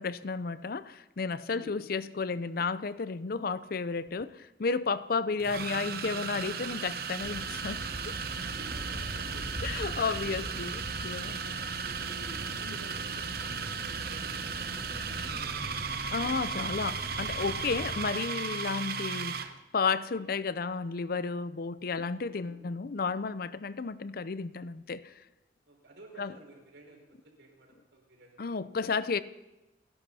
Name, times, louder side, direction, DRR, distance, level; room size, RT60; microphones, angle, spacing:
voice 1, 0.0-8.1 9.6-11.4 12.7-12.8 16.1-19.4 19.7-25.1 26.2-26.3 28.4-29.2, left 4 dB, 55° left, 15 dB, 0.5 m, -32 dB
sound 1, 4.1-4.2 5.4-19.6, right 6 dB, 55° right, 0.9 m, -36 dB
sound 2, 7.2-17.9, equal, 35° right, 3.9 m, -42 dB
voice 2, 8.4-9.6 10.2-10.5 11.3-16.8 20.1-20.3 22.3-22.6 25.7-28.7, right 2 dB, 75° right, -1 dB, 5.7 m, -53 dB
29.5 x 11.5 x 4.3 m, 1.0 s
head